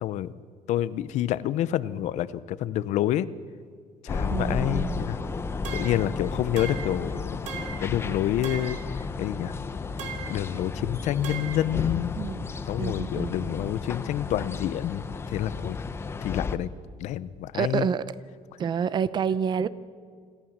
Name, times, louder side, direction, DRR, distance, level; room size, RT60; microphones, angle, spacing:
voice 1, 0.0-0.3 0.7-3.3 4.0-5.2 5.7-7.4 7.8-8.8 9.2-9.6 10.3-12.3 12.7-15.8 16.2-16.7 17.0-17.9, left 12 dB, 70° left, 17 dB, 0.7 m, -28 dB
sound 1, 4.1-16.6, left 4 dB, 20° left, 0.8 m, -33 dB
voice 2, 4.3-5.1 12.2-12.4 12.8-13.5 17.5-18.0 18.6-19.7, right 7 dB, 35° right, 16 dB, 0.7 m, -28 dB
sound 2, 5.6-6.1 6.6-7.0 7.5-7.9 8.4-8.9 10.0-10.4 11.2-11.7, right 7 dB, 75° right, 3.0 m, -38 dB
26.5 x 14.5 x 7.3 m, 2.1 s
cardioid pair, 170°, 13 cm